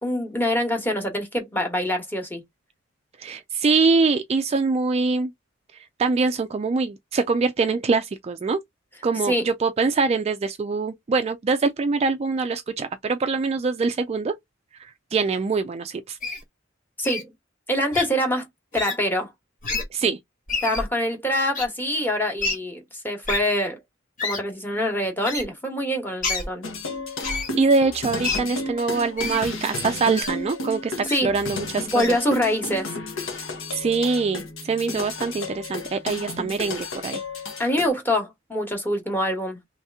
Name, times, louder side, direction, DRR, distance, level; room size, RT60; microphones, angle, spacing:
voice 1, 0.0-2.4 9.2-9.5 17.0-17.3 17.7-18.5 18.7-19.3 20.6-23.8 24.2-26.7 31.1-31.3 31.9-32.9 37.6-39.6, equal, 10° left, 1.1 m, -25 dB
voice 2, 3.2-5.3 6.0-8.6 9.0-14.3 14.8-16.2 19.9-20.2 27.3-32.0 33.7-37.2, right 4 dB, 30° right, 0.3 m, -24 dB
Wild animals, 16.2-16.4 17.0-17.2 17.9-18.1 18.7-19.0 19.6-19.8 20.5-20.8 21.5-21.6 22.4-22.5 23.3-23.4 24.2-24.4 25.2-25.4 26.2-26.5 27.2-27.5 28.2-28.4 29.2-29.4 30.1-30.3 31.0-31.2 32.0-32.1, left 3 dB, 40° left, 1.4 m, -27 dB
sound 1, 26.6-37.9, left 3 dB, 75° left, 1.1 m, -33 dB
3.2 x 2.8 x 3.5 m
head